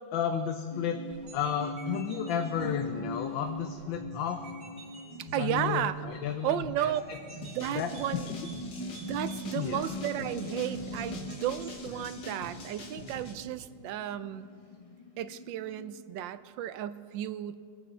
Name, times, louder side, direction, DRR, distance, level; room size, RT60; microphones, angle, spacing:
voice 1, 0.1-1.0 1.3-4.4 5.4-7.2 7.7-8.4 9.5-9.8 12.0-12.1, left 8 dB, 85° left, 6 dB, 1.5 m, -33 dB
sound 1, 0.7-16.0, left 1 dB, 35° left, 0.6 m, -42 dB
sound 2, 1.1-11.8, right 2 dB, 40° right, 2.3 m, -49 dB
voice 2, 5.2-6.0 6.4-7.0 7.4-8.6 9.0-14.5 15.2-17.6, right 11 dB, 80° right, 13 dB, 1.3 m, -33 dB
sound 3, 7.4-13.3, left 2 dB, 60° left, 1.8 m, -45 dB
23.0 x 8.9 x 4.3 m, 2.1 s
omnidirectional pair, 2.0 m